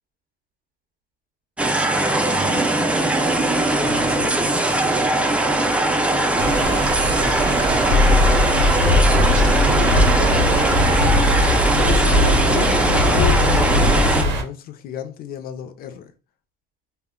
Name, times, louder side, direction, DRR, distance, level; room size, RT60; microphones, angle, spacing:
sound 1, 1.6-14.2, right 2 dB, 5° right, 0.4 m, -20 dB
voice 1, 2.3-2.7 9.1-10.9, right 4 dB, 50° right, 0.6 m, -31 dB
voice 2, 3.8-4.5 11.7-16.1, left 9 dB, 60° left, 0.4 m, -31 dB
sound 2, 6.4-14.4, right 2 dB, 90° right, 0.7 m, -25 dB
sound 3, 7.9-14.3, left 2 dB, 85° left, 0.8 m, -19 dB
2.1 x 2.1 x 3.6 m
cardioid pair, 110°, 17 cm